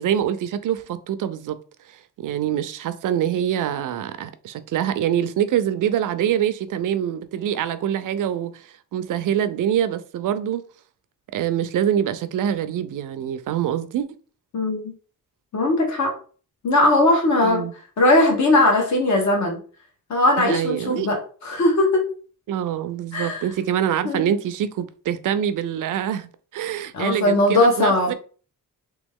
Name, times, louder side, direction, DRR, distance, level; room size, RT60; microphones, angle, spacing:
voice 1, 0.0-1.6 1.9-10.6 11.3-14.1 17.4-17.7 20.4-21.1 22.5-28.1, right 10 dB, 65° right, 0.5 m, -25 dB
voice 2, 15.5-16.2 16.6-17.7 18.0-19.6 20.1-22.0 23.1-23.4 24.0-24.3 26.9-28.1, left 1 dB, 55° left, 1.3 m, -19 dB
3.4 x 3.0 x 3.5 m
cardioid pair, 135°, 34 cm